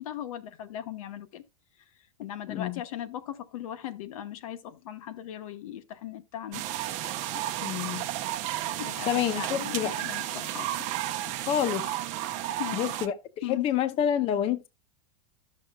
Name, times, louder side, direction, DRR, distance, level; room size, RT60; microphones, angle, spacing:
voice 1, 0.0-1.4 2.2-6.6 8.8-10.9 12.6-12.9 13.4-13.7, left 11 dB, 75° left, 1.0 m, -38 dB
voice 2, 2.5-2.8 7.6-8.1 9.1-9.9 11.5-11.9 12.7-13.2 13.5-14.7, left 10 dB, 35° left, 0.6 m, -28 dB
sound 1, 6.5-13.1, right 13 dB, 45° right, 0.8 m, -33 dB
12.5 x 6.5 x 2.3 m
supercardioid pair, 135°, 18 cm